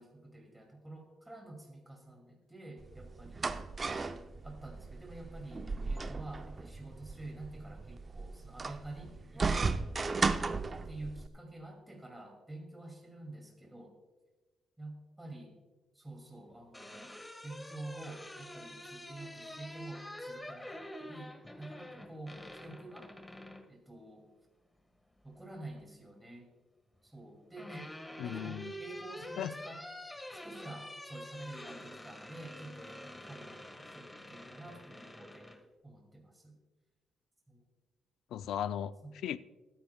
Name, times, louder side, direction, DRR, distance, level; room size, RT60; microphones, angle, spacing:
voice 1, 0.0-3.5 4.4-9.4 10.4-13.9 14.8-15.5 15.9-17.1 17.4-23.1 23.7-24.3 25.2-26.5 27.0-27.9 28.2-29.8 30.3-35.5 35.8-36.6 37.5-37.6 39.0-39.1, right 2 dB, 10° right, 1 dB, 2.5 m, -48 dB
sound 1, 2.8-11.3, right 4 dB, 30° right, 0.6 m, -36 dB
sound 2, 16.5-23.7 25.2-25.8 27.1-35.6, left 1 dB, 15° left, 1.6 m, -47 dB
voice 2, 28.2-28.7 29.4-29.5 38.3-38.9 39.2-39.4, left 10 dB, 75° left, 14 dB, 0.4 m, -36 dB
21.0 x 10.0 x 2.3 m, 1.2 s
cardioid pair, 90°, 0 cm